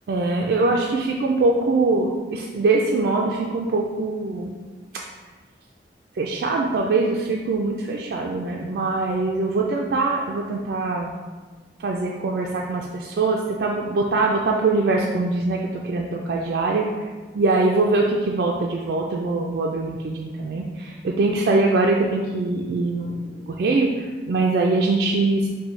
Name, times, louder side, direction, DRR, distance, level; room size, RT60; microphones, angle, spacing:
voice 1, 0.1-4.5 4.9-5.0 6.1-11.1 11.8-16.9 17.4-25.5, right 3 dB, 65° right, -1 dB, 0.3 m, -23 dB
5.2 x 2.7 x 3.1 m, 1.4 s
head